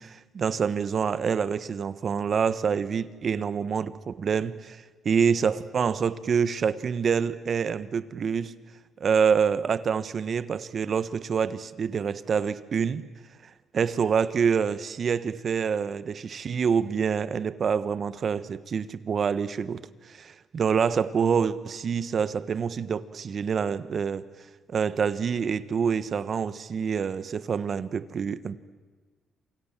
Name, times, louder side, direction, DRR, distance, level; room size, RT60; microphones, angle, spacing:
voice 1, 0.0-8.5 9.0-13.1 13.7-19.8 20.1-24.2 24.7-28.6, right 6 dB, 50° right, 15 dB, 1.4 m, -26 dB
28.0 x 26.5 x 7.6 m, 1.4 s
cardioid pair, 90°, 0 cm